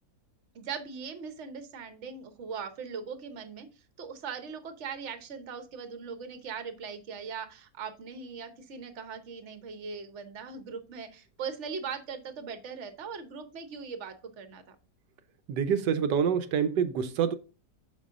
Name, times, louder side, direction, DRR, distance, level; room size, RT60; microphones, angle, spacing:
voice 1, 0.5-3.7 4.0-14.7, right 6 dB, 50° right, 1.2 m, -40 dB
voice 2, 15.5-17.3, right 7 dB, 85° right, 1.4 m, -26 dB
6.8 x 5.4 x 3.7 m
omnidirectional pair, 1.8 m